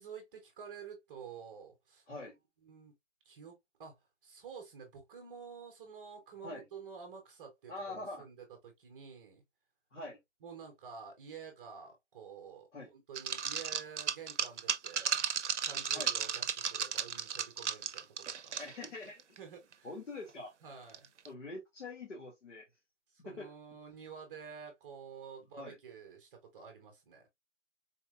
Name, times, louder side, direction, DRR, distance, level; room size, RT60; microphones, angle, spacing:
voice 1, 0.0-2.1 2.6-2.9 3.2-3.5 3.8-9.4 10.4-15.2 15.6-18.6 19.4-19.9 20.6-21.1 23.1-27.2, right 6 dB, 15° right, 0.7 m, -50 dB
voice 2, 7.7-8.3 9.9-10.2 12.7-12.9 15.9-16.1 18.6-19.4 19.8-20.5 21.3-22.7 23.2-23.5 25.6-25.8, left 2 dB, 80° left, 1.9 m, -44 dB
sound 1, 13.1-18.9 19.2-19.4 19.7-19.8 20.9-21.3, right 7 dB, 75° right, 0.6 m, -34 dB
4.1 x 3.2 x 2.3 m
hypercardioid pair, 150°, 36 cm